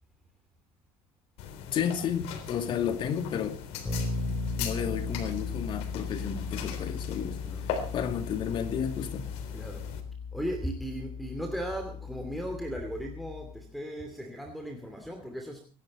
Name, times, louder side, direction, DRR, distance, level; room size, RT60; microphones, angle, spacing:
sound 1, 1.4-10.0, left 7 dB, 75° left, 3.7 m, -40 dB
voice 1, 1.7-3.6 4.6-7.4 7.7-9.3, left 8 dB, 50° left, 2.5 m, -32 dB
Bass guitar, 3.8-13.7, left 4 dB, 15° left, 4.2 m, -37 dB
voice 2, 7.4-7.8 9.5-9.9 10.3-15.6, equal, ahead, 2.6 m, -37 dB
24.5 x 11.5 x 4.2 m
cardioid pair, 125°, 11 cm